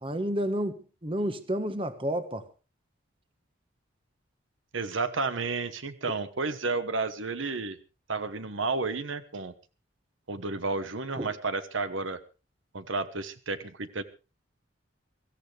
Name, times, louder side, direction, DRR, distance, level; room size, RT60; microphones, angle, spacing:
voice 1, 0.0-2.4 11.2-11.3, equal, 25° right, 1.3 m, -30 dB
voice 2, 4.7-7.8 8.1-9.5 10.3-12.2 12.7-14.0, right 3 dB, 80° right, 1.2 m, -31 dB
23.5 x 14.5 x 3.4 m
head